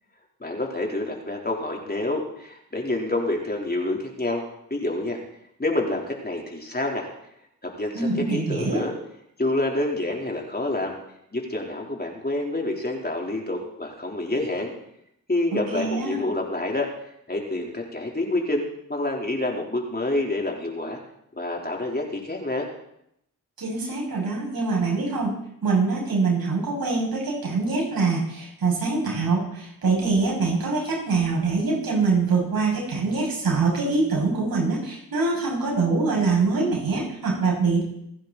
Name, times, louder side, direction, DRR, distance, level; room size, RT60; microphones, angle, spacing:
voice 1, 0.4-4.4 4.7-5.2 5.6-7.1 7.6-9.0 9.4-10.9 11.3-14.7 15.3-16.9 17.3-21.0 21.4-22.7, left 2 dB, 25° left, 0 dB, 3.9 m, -27 dB
voice 2, 7.9-8.8 15.5-16.3 23.6-25.3 25.6-37.8, right 4 dB, 70° right, -2 dB, 6.9 m, -24 dB
24.5 x 10.0 x 4.2 m, 0.76 s
cardioid pair, 50°, 37 cm